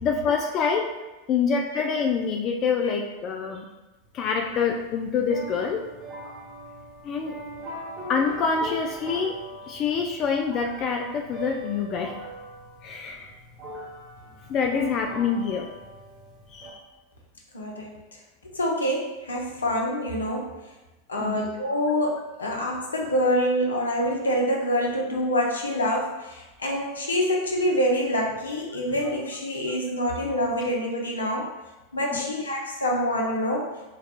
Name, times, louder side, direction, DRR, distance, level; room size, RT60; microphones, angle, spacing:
voice 1, 0.0-0.8 1.3-3.7 4.1-5.8 7.0-7.3 8.1-9.3 9.7-12.1 12.8-13.3 14.5-15.7 16.5-16.8 21.2-21.4 23.7-23.9 29.7-29.8 32.1-32.3, left 5 dB, 40° left, 2 dB, 0.3 m, -26 dB
sound 1, 4.1-16.7, right 1 dB, 40° right, 1.2 m, -41 dB
voice 2, 17.5-18.2 18.5-20.6 21.1-31.5 31.9-33.7, equal, 80° left, -1 dB, 0.6 m, -26 dB
4.5 x 2.3 x 2.3 m, 1.1 s
figure-of-eight pair, 85°, 0 cm